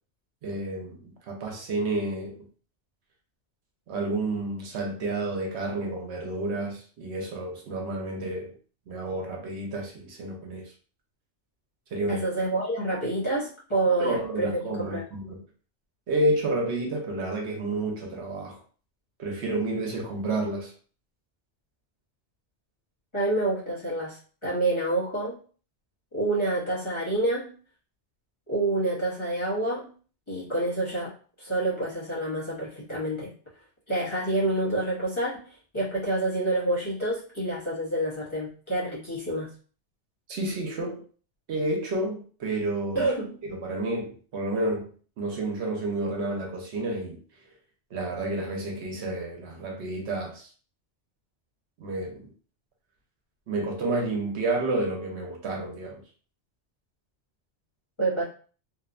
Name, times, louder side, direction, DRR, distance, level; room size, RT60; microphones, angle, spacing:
voice 1, 0.4-2.4 3.9-8.5 8.9-10.7 11.9-12.3 14.0-15.4 16.1-18.6 19.2-20.7 40.3-41.0 41.5-43.1 43.4-44.9 45.2-47.2 47.9-50.5 51.8-52.2 53.5-56.0, right 2 dB, 70° right, 0.9 m, -30 dB
voice 2, 12.1-15.0 23.1-25.4 26.1-27.5 28.5-29.9 30.3-33.3 33.9-39.5 42.9-43.4 58.0-58.2, right 2 dB, 30° left, 0.8 m, -28 dB
2.7 x 2.1 x 2.4 m
omnidirectional pair, 1.2 m